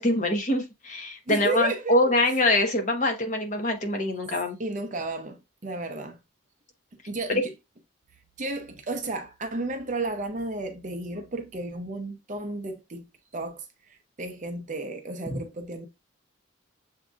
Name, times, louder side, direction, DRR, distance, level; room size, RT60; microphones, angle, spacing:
voice 1, 0.0-4.6, left 1 dB, 35° left, 1.0 m, -24 dB
voice 2, 1.3-2.0 4.6-6.2 7.1-7.5 8.4-13.0 13.3-15.9, right 2 dB, 35° right, 0.6 m, -33 dB
7.0 x 2.7 x 2.3 m
head